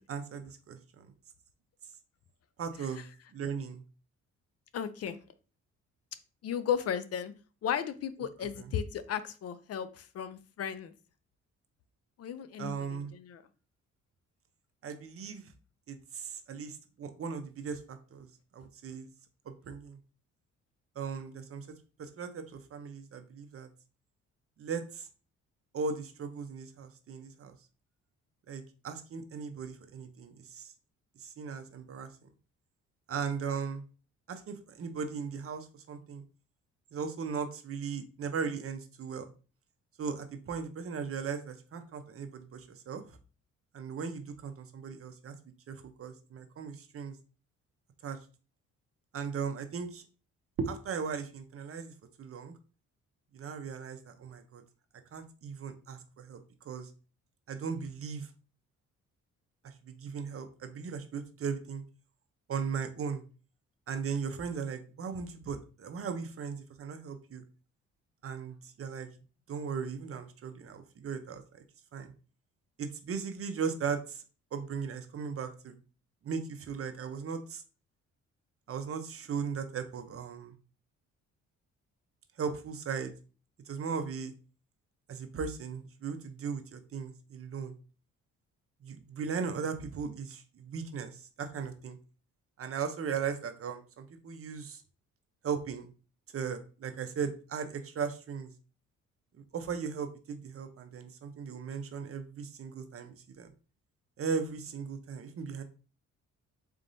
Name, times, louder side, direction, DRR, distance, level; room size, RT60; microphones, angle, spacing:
voice 1, 0.1-1.1 2.6-3.8 8.6-8.7 12.6-13.1 14.8-15.5 15.9-18.3 18.5-19.1 19.5-20.0 21.0-21.7 22.0-23.7 24.6-25.1 25.7-27.5 28.5-30.7 31.2-32.1 33.1-33.8 34.3-36.2 36.9-39.3 40.0-43.2 43.7-45.4 45.7-47.2 48.0-48.2 49.1-50.0 50.6-51.9 52.2-52.6 53.3-54.6 55.1-56.9 57.5-58.3 59.6-61.8 62.5-63.2 63.9-67.4 68.2-69.1 69.5-71.6 71.9-72.1 72.8-74.2 74.5-75.7 76.2-77.6 78.7-80.5 82.4-83.1 83.7-84.3 85.1-87.7 88.8-92.0 92.6-94.8 95.4-95.9 96.3-98.5 99.5-103.5 104.2-105.6, right 6 dB, 50° right, 8 dB, 0.7 m, -37 dB
voice 2, 4.7-5.2 6.4-7.3 7.6-10.9 12.2-13.4, left 8 dB, 55° left, 13 dB, 0.5 m, -35 dB
4.0 x 3.5 x 2.6 m, 0.35 s
cardioid pair, 90°, 30 cm